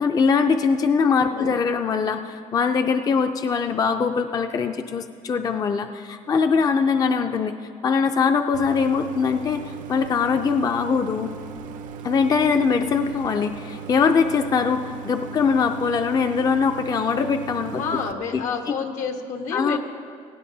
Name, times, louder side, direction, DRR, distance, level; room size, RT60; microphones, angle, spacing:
voice 1, 0.0-7.5 7.8-9.6 9.9-11.3 12.0-17.8 18.3-18.4 18.7-18.8 19.5-19.8, left 5 dB, 30° left, 7 dB, 0.4 m, -22 dB
voice 2, 1.3-1.6 17.8-19.8, left 5 dB, 80° left, 3 dB, 1.3 m, -29 dB
Idling, 8.5-18.1, right 6 dB, 85° right, 0.7 m, -37 dB
17.0 x 16.0 x 2.7 m, 2.2 s
cardioid pair, 155°, 13 cm